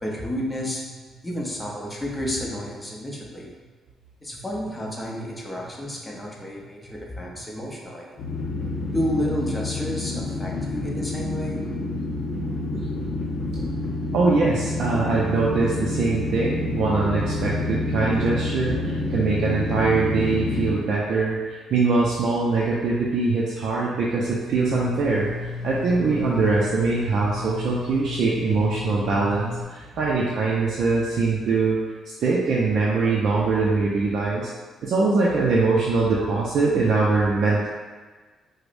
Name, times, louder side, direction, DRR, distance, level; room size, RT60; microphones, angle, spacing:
voice 1, 0.0-0.9 1.2-3.5 4.2-8.1 8.9-11.6 30.0-30.1, equal, 15° left, -3 dB, 0.7 m, -31 dB
sound 1, 8.2-20.7, left 2 dB, 60° left, 0.7 m, -28 dB
voice 2, 14.1-31.8 32.2-34.5 34.8-37.7, right 3 dB, 70° right, -5 dB, 0.4 m, -22 dB
sound 2, 24.5-29.6, left 4 dB, 10° right, 1.4 m, -33 dB
4.7 x 2.0 x 2.5 m, 1.4 s
cardioid pair, 90°, 0 cm